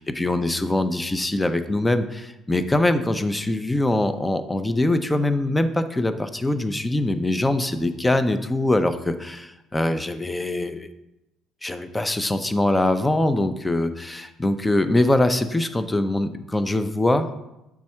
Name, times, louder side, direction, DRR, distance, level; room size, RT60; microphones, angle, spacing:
voice 1, 0.0-10.9 11.6-17.3, left 1 dB, 10° left, 10 dB, 0.4 m, -23 dB
7.4 x 3.5 x 4.3 m, 0.95 s
cardioid pair, 110°, 0 cm